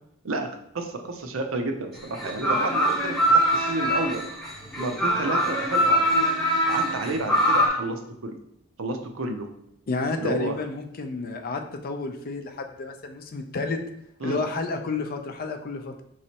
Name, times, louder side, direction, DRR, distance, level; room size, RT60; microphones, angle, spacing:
voice 1, 0.7-4.2 4.8-6.3 6.7-8.4 8.8-9.5 10.2-10.6 14.2-14.4, right 2 dB, 75° right, 5 dB, 0.6 m, -31 dB
sound 1, 2.0-7.7, equal, ahead, 1.3 m, -23 dB
voice 2, 9.9-13.8 14.2-16.0, left 3 dB, 45° left, 5 dB, 0.5 m, -30 dB
5.0 x 3.1 x 2.8 m, 0.76 s
head